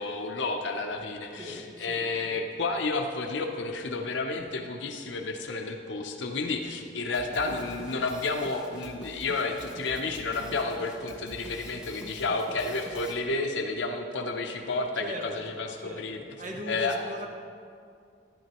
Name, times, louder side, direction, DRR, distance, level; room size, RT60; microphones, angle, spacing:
voice 1, 0.0-16.2 16.7-17.0, left 3 dB, 75° left, 3 dB, 0.7 m, -31 dB
voice 2, 1.4-2.4 7.1-7.5 14.9-17.3, equal, 40° right, 1 dB, 1.0 m, -40 dB
Drum kit, 7.1-13.1, equal, 5° right, 0.8 m, -46 dB
11.0 x 10.5 x 3.0 m, 2.4 s
head